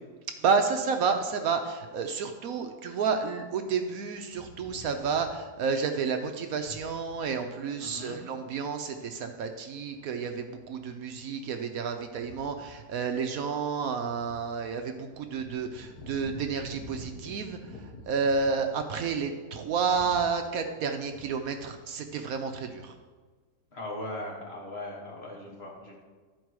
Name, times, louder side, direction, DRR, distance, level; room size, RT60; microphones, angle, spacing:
voice 1, 0.4-22.9, right 5 dB, 70° right, 6 dB, 1.0 m, -30 dB
sound 1, 4.3-5.6 6.5-8.2 8.9-9.1 9.5-19.2 19.5-20.4 20.9-21.6, left 2 dB, 70° left, 1.8 m, -49 dB
voice 2, 7.8-8.2 23.7-26.0, left 1 dB, 40° left, -2 dB, 1.6 m, -39 dB
12.0 x 4.4 x 4.7 m, 1.4 s
omnidirectional pair, 1.7 m